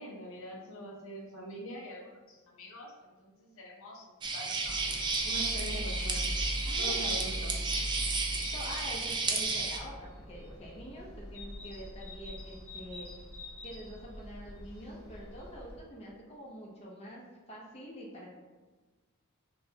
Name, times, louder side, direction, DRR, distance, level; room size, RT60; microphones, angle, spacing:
voice 1, 0.0-4.8 5.2-6.3 6.8-7.7, equal, 60° left, -2 dB, 0.7 m, -44 dB
sound 1, 4.2-9.8, right 3 dB, 20° right, 0.3 m, -32 dB
sound 2, 4.6-15.8, equal, 10° left, 1.2 m, -41 dB
voice 2, 6.7-7.0 7.4-7.5 8.1-13.1 13.6-18.4, equal, 25° left, -4 dB, 0.8 m, -46 dB
5.8 x 2.3 x 2.8 m, 1.3 s
head